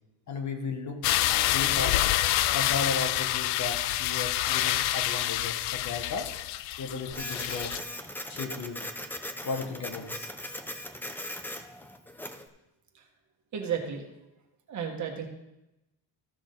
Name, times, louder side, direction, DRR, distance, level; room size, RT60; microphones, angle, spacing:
voice 1, 0.3-1.1 1.5-2.0 2.5-6.3 6.8-7.8 8.3-8.8 9.4-10.3, left 4 dB, 40° left, 5 dB, 1.1 m, -35 dB
sound 1, 1.0-7.8, left 14 dB, 85° left, 0.5 m, -27 dB
Printer, 7.1-12.5, left 1 dB, 5° left, 0.4 m, -39 dB
voice 2, 13.5-14.0 14.7-15.3, right 7 dB, 40° right, 1 dB, 1.6 m, -33 dB
14.5 x 6.3 x 3.9 m, 0.92 s
cardioid pair, 155°, 44 cm